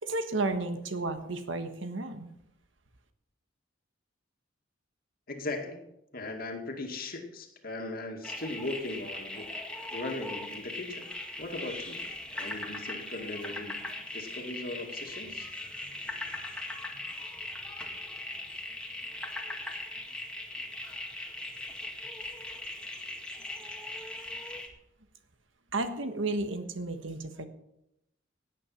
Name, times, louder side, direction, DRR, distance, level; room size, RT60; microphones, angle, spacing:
voice 1, 0.0-2.3 25.7-27.4, right 2 dB, 75° right, 8 dB, 1.4 m, -32 dB
voice 2, 5.3-5.9 6.1-9.5 9.9-11.1 11.4-12.0 12.3-15.5, left 2 dB, 50° left, 4 dB, 2.2 m, -38 dB
sound 1, 8.2-24.7, left 2 dB, 5° left, 1.9 m, -39 dB
17.0 x 8.9 x 5.8 m, 0.84 s
head